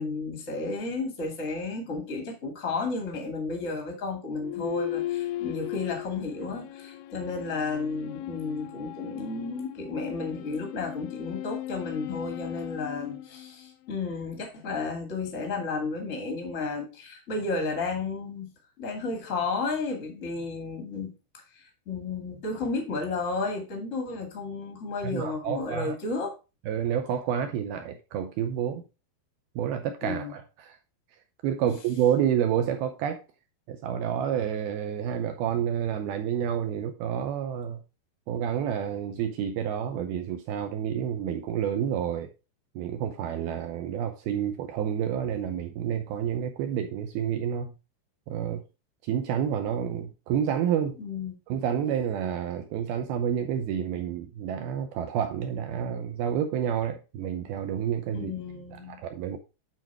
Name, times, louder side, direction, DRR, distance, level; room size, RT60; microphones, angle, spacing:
voice 1, 0.0-18.5 18.8-21.1 21.8-26.3 30.0-30.3 51.0-51.3 58.1-59.0, left 3 dB, 45° left, 0.9 m, -32 dB
sound 1, 4.4-14.0, left 14 dB, 85° left, 2.9 m, -37 dB
voice 2, 25.0-26.0 26.7-28.8 29.6-30.8 31.4-33.2 33.7-37.8 38.3-42.3 42.8-47.7 48.3-48.6 49.0-51.0 51.5-58.3 58.9-59.4, right 9 dB, 80° right, 2.2 m, -29 dB
9.2 x 4.1 x 4.5 m
omnidirectional pair, 5.1 m